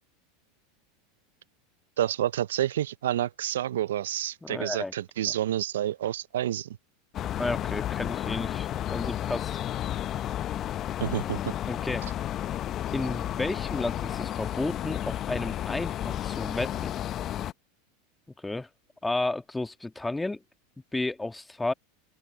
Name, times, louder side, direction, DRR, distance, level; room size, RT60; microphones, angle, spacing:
voice 1, 2.0-6.7 11.0-11.4, right 12 dB, 80° right, 0.7 m, -29 dB
voice 2, 4.4-4.9 5.2-5.3 7.3-9.6 11.7-12.2 12.9-16.9 18.4-18.7 19.0-20.4 20.9-21.7, left 2 dB, 10° left, 1.6 m, -32 dB
sound 1, 7.1-17.5, left 11 dB, 40° left, 0.8 m, -32 dB
open air
hypercardioid pair, 95°, 0 cm